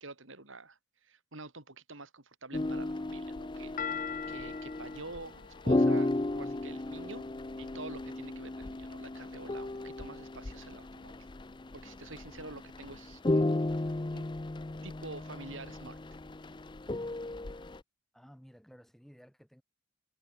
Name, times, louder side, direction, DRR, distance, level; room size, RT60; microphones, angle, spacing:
voice 1, 0.0-7.2 7.6-11.2 11.7-14.3 14.8-16.0, right 3 dB, 70° right, 3.5 m, -48 dB
sound 1, 2.5-17.8, left 2 dB, 20° left, 0.5 m, -34 dB
sound 2, 3.8-7.0, left 7 dB, 40° left, 0.9 m, -42 dB
voice 2, 18.1-19.6, equal, ahead, 4.8 m, -55 dB
head